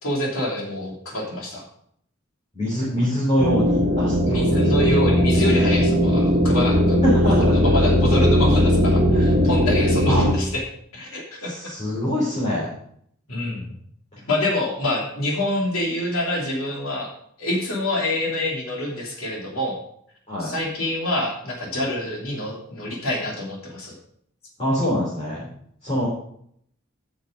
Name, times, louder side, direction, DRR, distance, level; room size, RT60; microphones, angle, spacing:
voice 1, 0.0-1.6 4.3-10.6 10.9-11.7 13.3-13.7 14.3-17.1 17.4-19.8 20.4-23.9, left 1 dB, 75° left, -1 dB, 2.9 m, -26 dB
voice 2, 2.5-4.9 7.0-7.7 10.1-10.3 11.4-12.7 14.1-14.2 20.3-20.5 24.6-25.5 25.8-26.1, equal, 30° left, -8 dB, 3.5 m, -24 dB
sound 1, 3.4-10.3, equal, 35° right, 1.5 m, -18 dB
9.1 x 6.6 x 5.2 m, 0.67 s
head